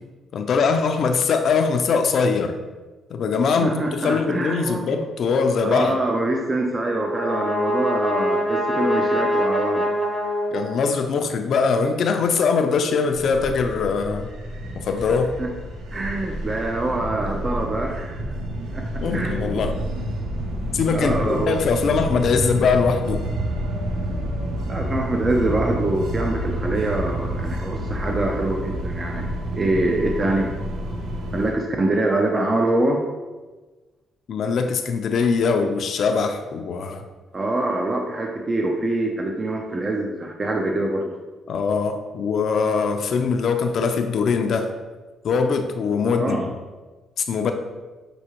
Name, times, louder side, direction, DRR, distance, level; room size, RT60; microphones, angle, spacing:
voice 1, 0.3-2.5 3.1-6.0 10.5-14.3 14.7-15.3 19.0-19.7 20.7-23.3 34.3-37.0 41.5-44.7 45.2-46.5 47.2-47.5, left 5 dB, 65° left, 6 dB, 0.4 m, -22 dB
voice 2, 3.6-4.9 5.6-9.9 15.4-15.5 15.9-18.2 18.7-19.6 20.9-21.6 24.7-29.3 29.5-30.5 31.3-33.0 37.3-41.1 46.2-46.4, right 2 dB, 30° right, 1 dB, 0.4 m, -24 dB
Brass instrument, 6.8-11.2, equal, ahead, 0.7 m, -24 dB
sound 1, 13.1-31.5, right 1 dB, 80° right, 0.6 m, -29 dB
6.1 x 2.7 x 2.9 m, 1.3 s
cardioid pair, 90°, 0 cm